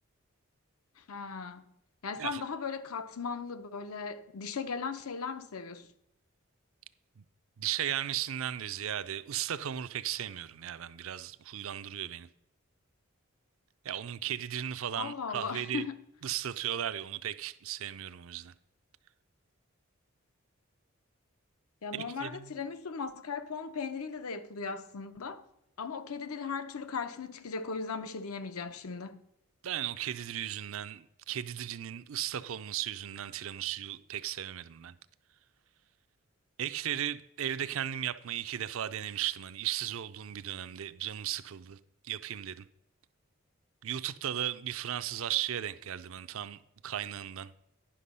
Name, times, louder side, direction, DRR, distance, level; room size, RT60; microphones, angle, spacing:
voice 1, 1.0-1.6 2.0-5.9 15.0-16.0 21.8-25.4 25.8-29.2, left 5 dB, 90° left, 0.7 m, -37 dB
voice 2, 7.6-12.3 13.8-15.8 16.2-18.5 21.9-22.5 29.6-34.9 36.6-41.8 42.0-42.7 43.8-47.5, right 11 dB, 75° right, 0.4 m, -36 dB
9.9 x 6.0 x 5.4 m
head